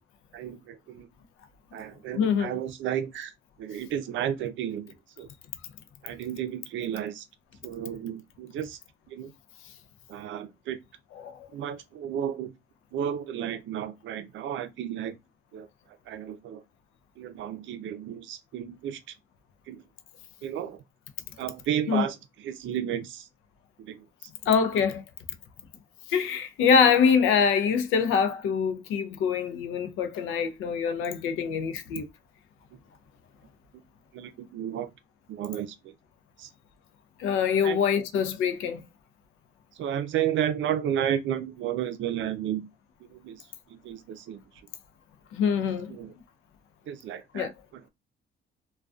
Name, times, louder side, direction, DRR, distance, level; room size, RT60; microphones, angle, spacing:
voice 1, 0.3-1.1 1.7-3.3 3.6-5.3 6.0-7.3 7.6-8.8 9.1-9.3 10.1-10.8 11.5-12.5 12.9-15.2 15.5-15.7 16.1-16.6 17.2-19.0 19.7-19.8 20.4-20.8 21.4-23.3 23.8-24.3 34.1-34.9 35.3-35.9 36.4-36.5 37.6-37.8 39.7-42.7 43.1-44.4 45.9-46.1 46.9-47.8, right 10 dB, 75° right, 0.5 m, -32 dB
voice 2, 2.1-2.5 11.2-11.5 21.9-22.0 24.5-25.0 26.1-32.0 37.2-38.9 45.3-45.9 47.3-47.5, left 6 dB, 85° left, 0.5 m, -24 dB
2.3 x 2.2 x 2.4 m
cardioid pair, 90°, 20 cm